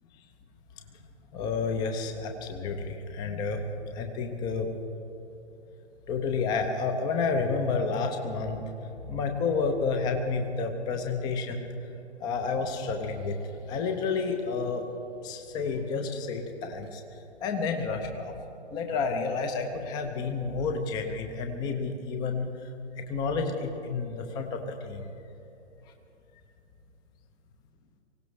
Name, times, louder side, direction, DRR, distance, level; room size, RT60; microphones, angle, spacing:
voice 1, 1.3-4.7 6.1-8.6 9.1-11.7 12.2-13.4 13.7-14.8 15.2-17.0 17.4-18.4 18.7-22.7 23.0-25.1, left 4 dB, 10° left, 5 dB, 0.8 m, -30 dB
24.0 x 17.0 x 3.3 m, 2.9 s
figure-of-eight pair, 130°, 35 cm